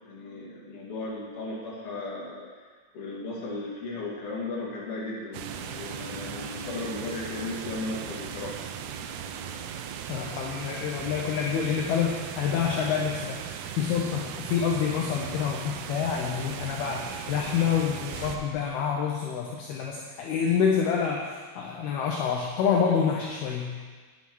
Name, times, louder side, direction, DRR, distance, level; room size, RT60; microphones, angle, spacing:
voice 1, 0.0-2.5 2.9-8.6 12.6-12.8, left 2 dB, 40° left, -5 dB, 2.4 m, -36 dB
sound 1, 5.3-18.4, right 9 dB, 80° right, 2.6 m, -38 dB
sound 2, 5.4-12.4, equal, 55° right, 2.7 m, -46 dB
voice 2, 10.1-23.8, left 7 dB, 75° left, -1 dB, 2.5 m, -27 dB
sound 3, 13.5-18.9, equal, 20° right, 3.7 m, -48 dB
9.9 x 7.2 x 6.2 m, 1.5 s
omnidirectional pair, 5.2 m